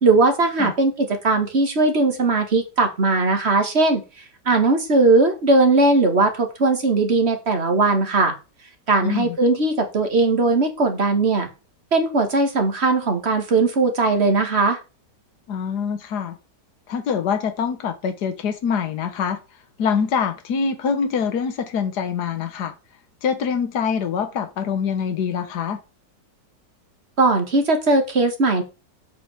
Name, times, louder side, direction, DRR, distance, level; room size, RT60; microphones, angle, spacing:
voice 1, 0.0-4.0 4.5-8.3 8.9-11.5 11.9-14.8 27.2-28.6, right 3 dB, 35° right, 2.2 m, -19 dB
voice 2, 9.0-9.4 15.5-16.4 16.9-19.4 19.8-22.7 23.2-25.8, left 6 dB, 65° left, 1.8 m, -24 dB
8.2 x 5.0 x 7.2 m
omnidirectional pair, 1.9 m